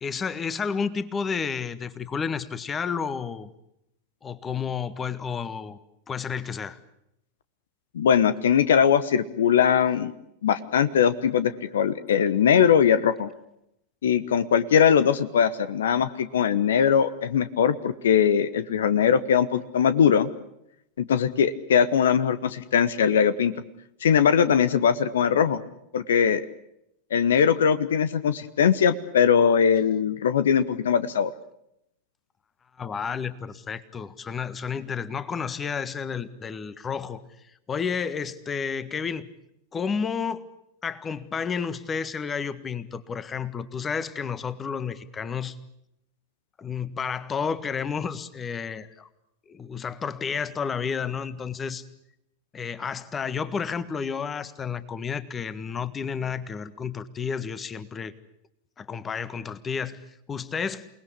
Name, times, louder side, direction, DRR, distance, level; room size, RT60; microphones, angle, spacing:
voice 1, 0.0-3.5 4.2-5.8 6.1-6.8 32.8-37.2 37.7-39.3 39.7-40.5 40.8-45.6 46.6-49.1 49.5-51.8 52.5-58.1 58.8-60.0 60.3-60.9, left 6 dB, 20° left, 14 dB, 1.5 m, -31 dB
voice 2, 7.9-10.1 10.4-13.3 14.0-20.3 21.0-23.5 24.0-25.6 25.9-26.4 27.1-31.3, left 7 dB, 60° left, 14 dB, 1.1 m, -21 dB
28.5 x 20.0 x 8.4 m, 0.81 s
figure-of-eight pair, 90°, 0 cm